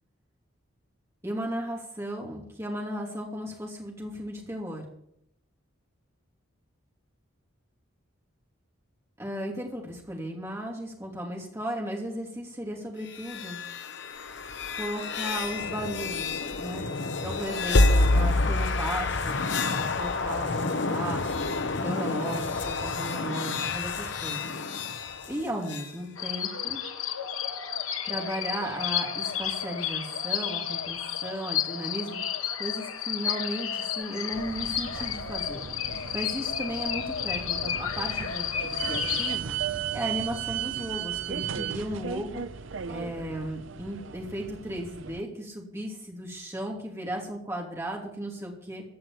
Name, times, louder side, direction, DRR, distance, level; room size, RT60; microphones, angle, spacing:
voice 1, 1.2-4.8 9.2-13.6 14.7-16.8 17.2-19.4 19.7-21.5 21.8-24.5 25.3-26.8 28.0-35.6 36.1-39.5 39.9-42.4 42.9-48.8, equal, 15° right, -1 dB, 2.8 m, -35 dB
sound 1, 13.1-25.9, left 2 dB, 60° left, 0.9 m, -28 dB
sound 2, 26.2-39.4, left 9 dB, 85° left, 1.2 m, -32 dB
sound 3, 34.3-45.2, right 9 dB, 65° right, 0.5 m, -36 dB
15.0 x 5.8 x 9.8 m, 0.73 s
head